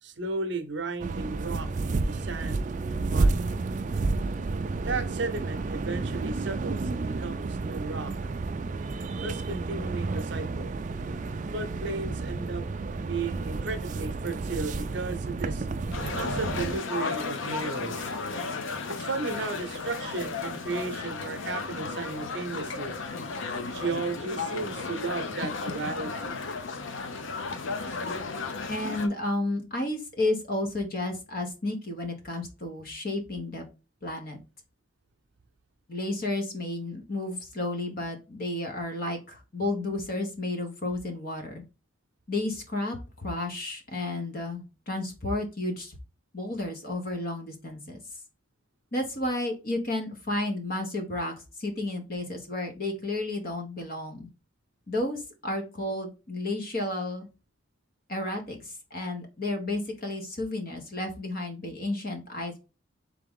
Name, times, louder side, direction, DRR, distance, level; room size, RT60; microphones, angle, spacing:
voice 1, 0.0-3.4 4.8-8.3 9.2-10.7 11.5-12.7 13.0-15.7 16.2-18.1 18.9-22.9 23.7-26.4, right 3 dB, 60° right, 0.7 m, -34 dB
sound 1, 1.0-16.8, right 3 dB, 40° right, 0.3 m, -31 dB
sound 2, 15.9-29.1, left 4 dB, 70° left, 0.6 m, -34 dB
voice 2, 28.7-33.6 34.0-34.4 35.9-41.6 42.3-46.0 46.3-48.0 48.9-51.3 51.6-54.3 54.9-57.3 58.1-62.6, left 2 dB, 45° left, 1.1 m, -32 dB
3.8 x 3.6 x 3.6 m
head